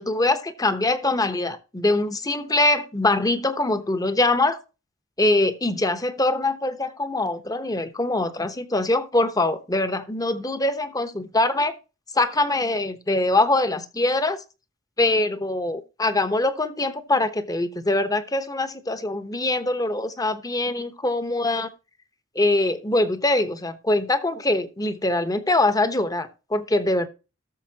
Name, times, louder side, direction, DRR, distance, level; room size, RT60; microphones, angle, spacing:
voice 1, 0.0-4.6 5.2-11.8 12.1-14.4 15.0-21.7 22.3-27.1, left 2 dB, 20° left, 10 dB, 1.1 m, -23 dB
18.0 x 6.8 x 2.9 m, 0.32 s
head